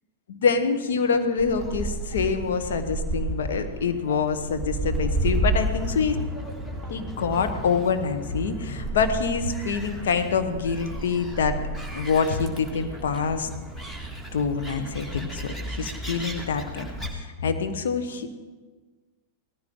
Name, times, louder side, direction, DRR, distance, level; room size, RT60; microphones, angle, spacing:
voice 1, 0.3-6.2 6.9-11.5 11.9-13.5 14.3-18.3, left 5 dB, 60° left, 7 dB, 1.2 m, -26 dB
Gull seagull, 1.4-17.1, right 1 dB, 10° left, 2.1 m, -32 dB
18.0 x 14.5 x 3.8 m, 1.3 s
figure-of-eight pair, 90°, 0 cm